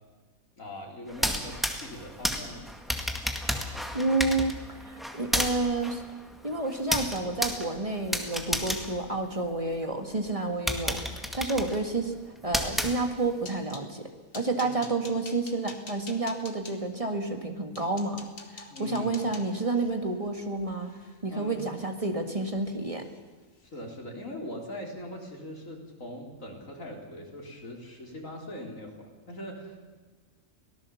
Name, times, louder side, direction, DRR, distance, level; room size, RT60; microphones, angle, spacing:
voice 1, 0.6-2.6 14.6-14.8 18.7-19.1 21.3-21.6 23.6-29.8, left 1 dB, 75° left, 0 dB, 4.3 m, -41 dB
sound 1, 1.1-9.8 10.3-10.4 10.7-13.4, equal, ahead, 1.8 m, -32 dB
voice 2, 3.9-4.5 4.8-6.0 6.4-11.0 11.3-12.1 12.4-14.1 14.3-18.2 18.5-20.9 21.2-23.0, right 2 dB, 25° right, 4 dB, 2.0 m, -30 dB
sound 2, 13.3-13.9 14.3-16.8 17.4-17.5 17.7-21.9 22.3-22.7 23.0-23.2 23.6-23.8, left 3 dB, 45° left, 2.1 m, -47 dB
24.5 x 18.0 x 7.2 m, 1.3 s
omnidirectional pair, 1.4 m